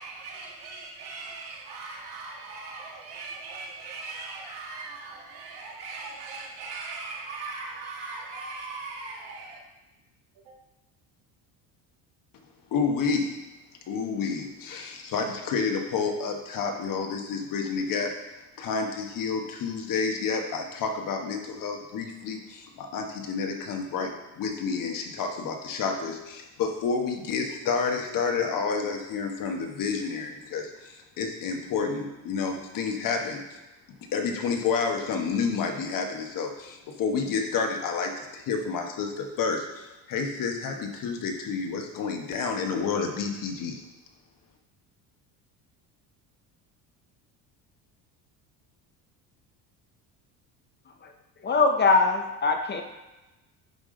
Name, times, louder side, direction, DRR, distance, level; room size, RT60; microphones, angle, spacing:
voice 1, 0.0-9.6 10.3-10.6, right 3 dB, 75° right, -1 dB, 1.7 m, -39 dB
voice 2, 12.7-13.3 13.9-18.1 18.6-33.6 34.1-43.8, left 5 dB, 55° left, 3 dB, 1.2 m, -29 dB
voice 3, 50.9-52.8, left 3 dB, 25° left, 5 dB, 0.6 m, -23 dB
10.5 x 3.6 x 3.8 m, 1.1 s
cardioid pair, 110°, 39 cm